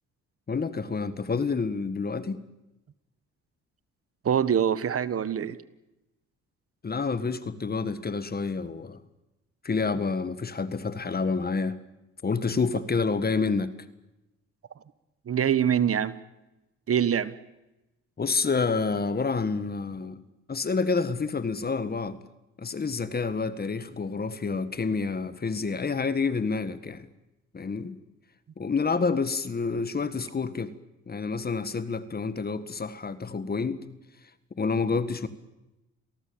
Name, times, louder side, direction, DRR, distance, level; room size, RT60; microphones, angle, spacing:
voice 1, 0.5-2.4 6.8-9.0 9.6-11.8 12.2-13.7 18.2-22.2 22.6-27.1 27.5-28.0 28.6-30.7 31.1-33.8 34.6-35.3, left 4 dB, 30° left, 14 dB, 1.8 m, -28 dB
voice 2, 4.2-5.6 15.3-16.2 16.9-17.3, right 8 dB, 50° right, 15 dB, 1.4 m, -24 dB
27.5 x 18.0 x 8.9 m, 0.97 s
cardioid pair, 90°, 30 cm